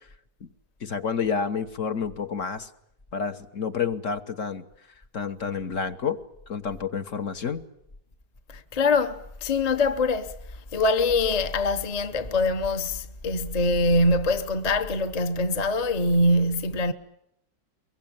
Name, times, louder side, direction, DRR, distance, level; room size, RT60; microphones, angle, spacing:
voice 1, 0.8-2.7 3.1-4.6 5.1-6.2 6.5-7.6, left 6 dB, 50° left, 1.4 m, -29 dB
voice 2, 8.5-10.3 10.7-16.9, left 2 dB, 30° left, 0.9 m, -24 dB
24.0 x 23.0 x 8.8 m
omnidirectional pair, 1.8 m